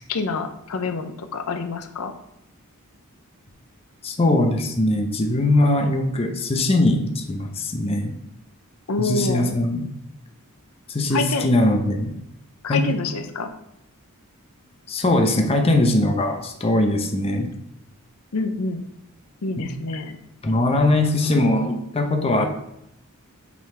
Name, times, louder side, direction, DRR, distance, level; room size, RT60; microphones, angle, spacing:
voice 1, 0.1-2.1 8.9-9.5 11.1-11.5 12.6-13.5 18.3-18.8 19.4-20.2, left 3 dB, 80° left, 7 dB, 0.6 m, -26 dB
voice 2, 4.0-8.1 9.0-9.9 10.9-12.2 12.7-12.8 14.9-17.5 19.6-19.7 20.4-22.5, left 1 dB, 25° left, 4 dB, 0.6 m, -21 dB
5.9 x 3.9 x 4.2 m, 0.80 s
head